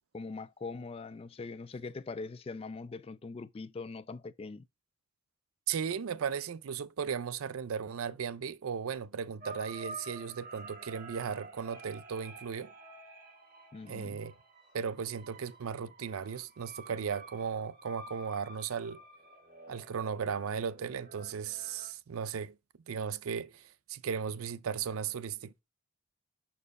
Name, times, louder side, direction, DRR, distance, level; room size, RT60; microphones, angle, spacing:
voice 1, 0.1-4.7 13.7-14.2, left 3 dB, 25° left, 0.3 m, -42 dB
voice 2, 5.7-12.7 13.9-14.3 14.7-19.0 19.7-22.6 22.9-25.6, right 6 dB, 85° right, 0.5 m, -36 dB
sound 1, 9.4-21.9, right 2 dB, 45° right, 2.1 m, -50 dB
10.0 x 4.5 x 4.1 m
head